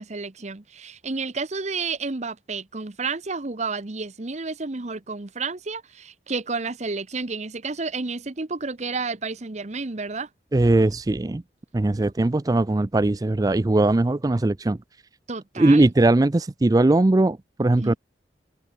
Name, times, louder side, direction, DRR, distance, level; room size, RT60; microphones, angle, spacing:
voice 1, 0.0-10.3 15.3-15.9 17.8-18.0, right 4 dB, 40° right, 0.9 m, -31 dB
voice 2, 10.5-11.4 11.7-14.8 15.6-18.0, right 2 dB, 20° right, 0.4 m, -20 dB
head